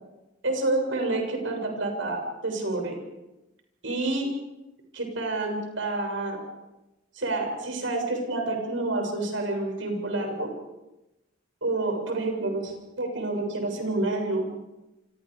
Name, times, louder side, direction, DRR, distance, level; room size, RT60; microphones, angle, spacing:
voice 1, 0.4-3.0 3.8-4.3 4.9-6.4 7.2-10.5 11.6-14.5, right 2 dB, 80° right, 3 dB, 7.4 m, -28 dB
28.5 x 26.0 x 5.1 m, 0.98 s
head